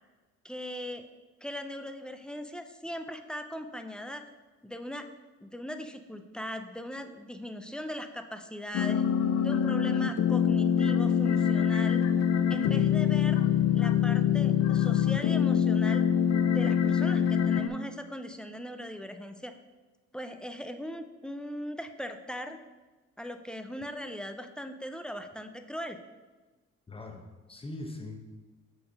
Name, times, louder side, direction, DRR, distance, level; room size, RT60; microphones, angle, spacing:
voice 1, 0.4-1.1 1.4-4.2 4.6-5.1 5.4-9.1 9.4-12.0 12.5-13.4 13.7-16.0 16.4-19.5 20.1-22.6 23.2-26.0, equal, 5° left, 7 dB, 0.4 m, -39 dB
sound 1, 8.7-17.7, left 8 dB, 60° left, 0.5 m, -25 dB
voice 2, 26.9-28.2, left 2 dB, 20° left, 3 dB, 1.0 m, -41 dB
7.0 x 3.5 x 5.3 m, 1.2 s
cardioid pair, 90°, 30 cm